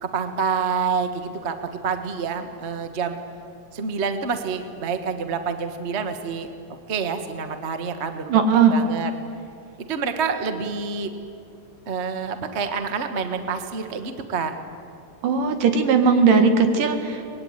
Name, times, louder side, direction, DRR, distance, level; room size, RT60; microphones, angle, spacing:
voice 1, 0.0-3.2 3.7-6.5 6.9-8.3 8.7-9.1 9.8-11.1 11.9-14.5, right 5 dB, 55° right, 7 dB, 0.7 m, -27 dB
voice 2, 8.3-8.7 15.2-17.3, right 5 dB, 85° right, 6 dB, 3.5 m, -18 dB
24.5 x 20.5 x 9.7 m, 2.5 s
omnidirectional pair, 3.7 m